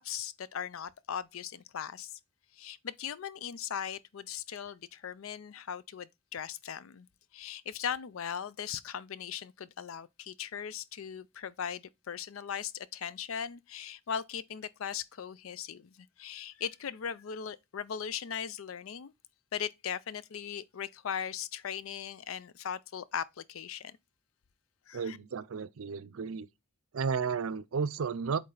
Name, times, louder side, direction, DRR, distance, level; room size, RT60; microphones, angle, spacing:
voice 1, 0.0-2.2 2.5-7.1 7.3-19.1 19.5-24.0 24.9-25.2, left 8 dB, 80° left, 0.5 m, -39 dB
voice 2, 24.9-26.5 26.9-28.4, right 5 dB, 80° right, 0.5 m, -33 dB
8.2 x 3.2 x 3.9 m
head